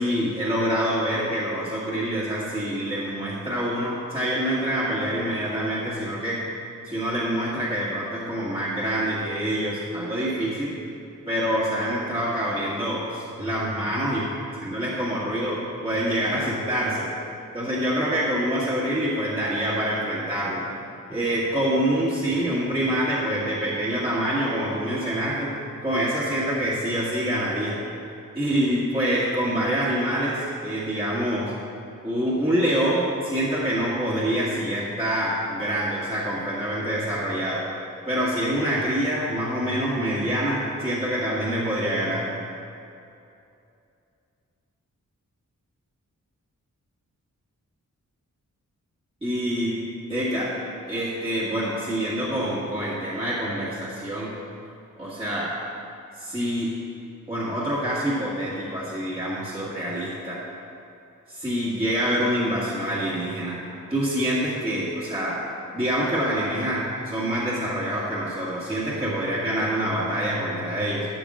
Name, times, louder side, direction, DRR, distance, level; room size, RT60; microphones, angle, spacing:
voice 1, 0.0-6.4 6.8-10.8 11.3-14.2 14.6-17.1 17.5-20.7 21.1-25.5 25.8-27.8 28.3-31.5 32.0-37.6 38.1-42.3 49.2-49.7 50.1-50.5 50.9-54.3 55.0-55.6 56.2-56.7 57.3-60.4 61.3-63.6 63.9-65.4 65.7-71.1, equal, 20° right, -9 dB, 2.0 m, -26 dB
12.0 x 11.5 x 2.5 m, 2.6 s
wide cardioid pair, 65°, 32 cm